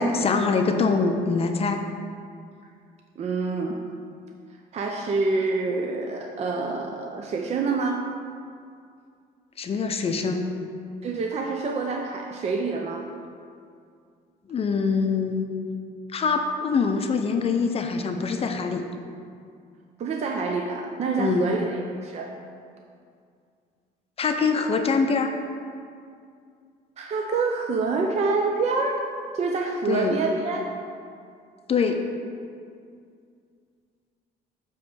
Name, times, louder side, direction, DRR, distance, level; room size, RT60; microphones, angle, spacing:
voice 1, 0.0-1.8 9.6-10.5 14.5-15.5 16.1-18.9 21.2-21.5 24.2-25.4 29.9-30.2 31.7-32.0, left 4 dB, 35° left, 5 dB, 0.6 m, -24 dB
voice 2, 3.2-3.8 4.7-8.1 11.0-13.0 20.0-22.3 27.0-30.7, right 4 dB, 40° right, 1 dB, 0.6 m, -27 dB
8.3 x 3.1 x 6.2 m, 2.3 s
cardioid pair, 110°, 17 cm